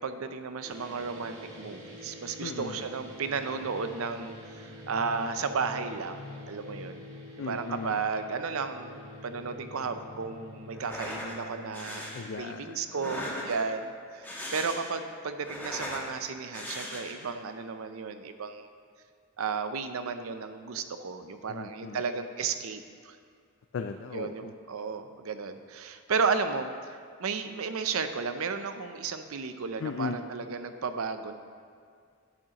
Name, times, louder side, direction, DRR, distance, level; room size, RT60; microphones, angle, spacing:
voice 1, 0.0-7.1 7.5-12.0 12.4-18.7 19.4-23.2 24.1-31.3, right 5 dB, 85° right, 9 dB, 0.6 m, -33 dB
sound 1, 0.6-12.3, equal, 70° right, 1.8 m, -48 dB
voice 2, 2.4-2.8 7.4-8.0 12.1-13.5 21.5-22.0 23.7-24.5 29.8-30.2, left 5 dB, 60° left, 6 dB, 0.4 m, -37 dB
sound 2, 3.5-11.4, left 3 dB, 85° left, 1.7 m, -50 dB
sound 3, 10.7-11.4 11.7-12.2 12.9-13.8 14.1-15.0 15.3-16.1 16.5-17.3, left 1 dB, 10° left, 1.2 m, -39 dB
10.5 x 8.9 x 2.9 m, 2.2 s
head